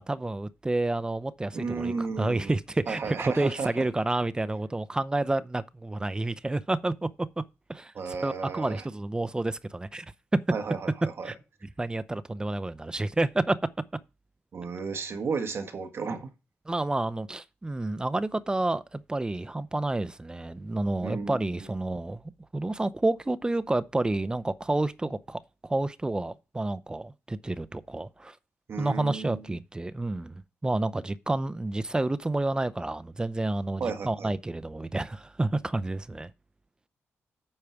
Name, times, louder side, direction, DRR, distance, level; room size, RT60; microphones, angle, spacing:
voice 1, 0.0-7.1 7.4-7.5 7.7-7.9 8.2-10.1 10.3-10.4 11.2-11.3 11.8-13.6 16.7-22.2 22.5-28.4 28.8-30.3 30.6-36.3, right 2 dB, 15° right, 0.6 m, -29 dB
voice 2, 1.5-2.5 2.9-3.9 7.9-8.8 10.5-11.3 14.5-16.3 21.0-22.0 28.7-29.4 33.8-34.3, right 5 dB, 55° right, 1.5 m, -34 dB
8.7 x 4.8 x 5.8 m
cardioid pair, 85°, 5 cm